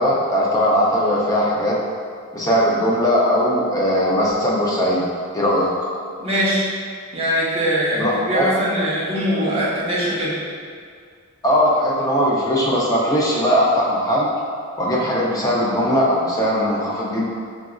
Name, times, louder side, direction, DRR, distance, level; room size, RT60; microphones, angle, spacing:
voice 1, 0.0-1.8 2.3-5.0 5.3-5.9 8.0-8.5 11.4-14.3 14.8-17.3, equal, 15° left, -5 dB, 0.4 m, -19 dB
voice 2, 6.2-6.7 7.1-10.4, equal, 25° right, -7 dB, 0.6 m, -21 dB
3.9 x 2.4 x 2.3 m, 2.1 s
head